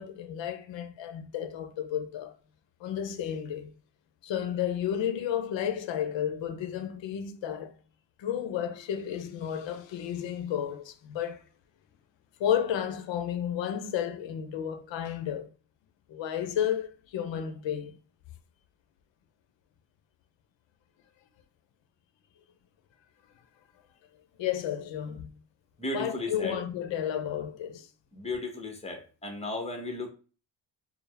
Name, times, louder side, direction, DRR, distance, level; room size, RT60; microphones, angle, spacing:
voice 1, 0.0-2.3 2.8-3.7 4.2-7.7 8.2-11.4 12.4-15.5 16.1-18.0 24.4-25.3 25.9-27.9, left 9 dB, 75° left, 0.7 m, -32 dB
voice 2, 25.8-26.6 28.1-30.1, left 2 dB, 15° left, 0.7 m, -35 dB
4.6 x 2.0 x 3.3 m
cardioid pair, 155°, 45 cm